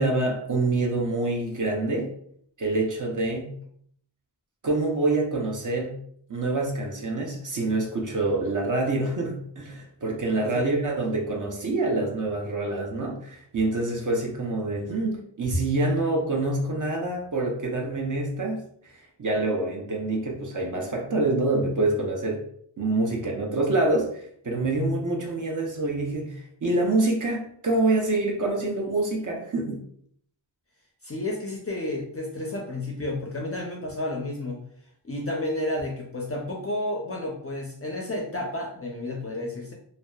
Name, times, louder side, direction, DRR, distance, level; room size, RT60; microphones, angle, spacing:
voice 1, 0.0-2.1 2.6-3.6 4.6-6.0 6.3-18.6 19.0-22.4 22.8-29.8, right 2 dB, 40° right, -1 dB, 0.6 m, -26 dB
voice 2, 31.0-34.6 35.0-39.7, left 1 dB, 30° left, 0 dB, 0.4 m, -31 dB
2.7 x 2.0 x 2.2 m, 0.65 s
wide cardioid pair, 90°, 47 cm